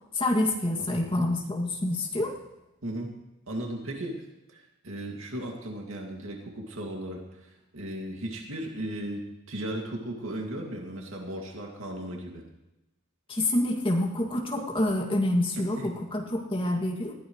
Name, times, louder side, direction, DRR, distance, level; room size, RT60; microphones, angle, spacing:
voice 1, 0.1-2.3 13.3-17.1, left 1 dB, 25° left, 0 dB, 2.3 m, -27 dB
voice 2, 2.8-3.1 3.5-12.4 15.7-15.9, right 1 dB, 90° right, 1 dB, 2.3 m, -36 dB
19.5 x 14.5 x 3.2 m, 0.95 s
head